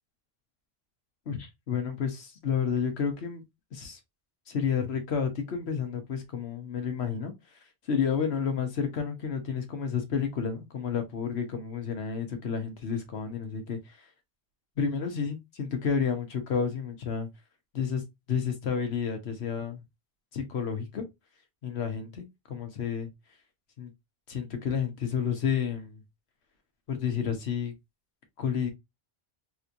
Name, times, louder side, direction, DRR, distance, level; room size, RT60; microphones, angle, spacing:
voice 1, 1.3-3.4 3.7-4.0 4.5-7.3 7.9-14.1 14.8-17.3 17.7-18.0 18.3-19.8 20.3-21.0 21.6-23.1 23.8-23.9 24.3-26.0 26.9-27.7 28.4-28.7, left 6 dB, 80° left, 1.2 m, -30 dB
3.4 x 3.0 x 2.5 m
omnidirectional pair, 1.1 m